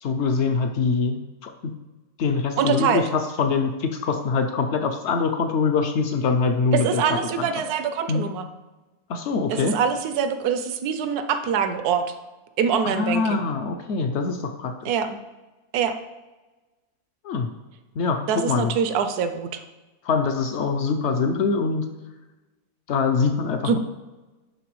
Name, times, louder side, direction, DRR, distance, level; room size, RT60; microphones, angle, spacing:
voice 1, 0.0-1.7 2.2-7.0 7.4-7.5 8.1-8.2 9.1-9.7 12.8-14.7 17.2-17.5 18.0-18.7 20.0-21.8 22.9-23.8, left 4 dB, 70° left, 5 dB, 0.6 m, -24 dB
voice 2, 2.6-3.0 6.7-8.5 9.5-12.1 12.6-13.4 14.8-15.2 15.7-16.0 18.3-19.6 23.6-23.8, right 7 dB, 80° right, 8 dB, 1.1 m, -24 dB
11.0 x 3.9 x 3.1 m, 1.1 s
omnidirectional pair, 1.7 m